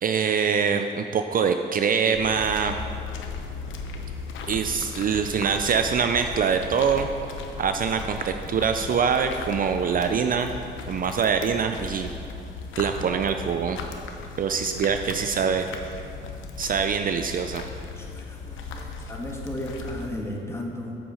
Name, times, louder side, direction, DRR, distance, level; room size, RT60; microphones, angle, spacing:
voice 1, 0.0-2.8 4.5-7.1 7.6-10.5 10.9-12.1 12.8-13.8 14.4-15.7 16.6-17.6, right 6 dB, 45° right, 7 dB, 0.4 m, -24 dB
sound 1, 2.1-20.1, left 4 dB, 75° left, 0.8 m, -37 dB
voice 2, 18.0-21.0, left 1 dB, 15° left, 0 dB, 1.4 m, -35 dB
8.0 x 6.1 x 5.6 m, 2.6 s
cardioid pair, 90°, 20 cm